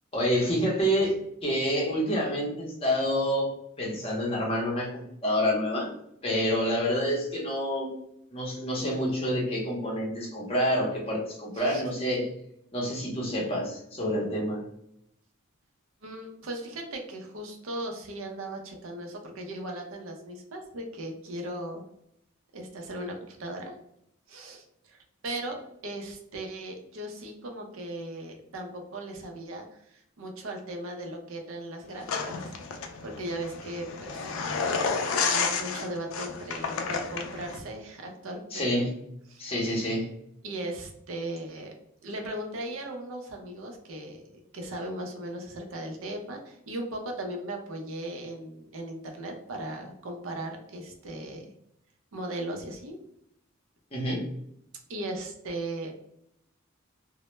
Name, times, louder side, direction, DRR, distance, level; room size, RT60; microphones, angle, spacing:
voice 1, 0.1-1.1 1.4-3.5 3.8-5.9 6.2-7.9 8.3-12.3 12.7-14.6 38.5-38.9 39.4-40.1 53.9-54.3, equal, 25° left, -3 dB, 0.6 m, -28 dB
voice 2, 16.0-21.8 22.5-23.8 24.3-32.6 33.0-34.3 34.6-38.9 39.3-39.5 40.4-41.7 42.0-44.2 44.5-51.5 52.1-53.0 54.9-56.0, right 1 dB, 75° right, 3 dB, 0.5 m, -37 dB
sound 1, 32.1-37.6, left 5 dB, 75° left, 0.3 m, -31 dB
2.1 x 2.0 x 3.0 m, 0.77 s
head